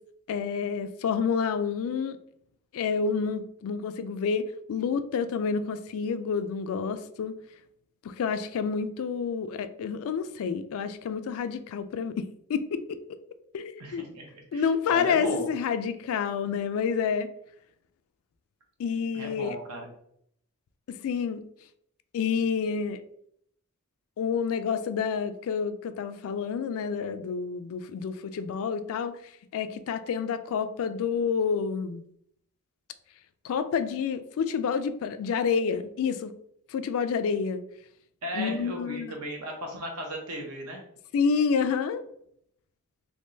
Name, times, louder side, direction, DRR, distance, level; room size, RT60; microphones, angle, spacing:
voice 1, 0.3-2.2 2.7-7.4 8.0-13.0 13.5-14.1 14.5-17.3 18.8-19.6 20.9-21.4 22.1-23.0 24.2-29.1 29.5-32.0 33.4-36.3 36.7-37.6 38.3-39.1 41.1-42.0, left 6 dB, 65° left, 0.3 m, -29 dB
voice 2, 13.8-15.5 19.1-19.9 38.2-40.8, right 1 dB, 75° right, 1.0 m, -36 dB
3.6 x 2.9 x 2.6 m
head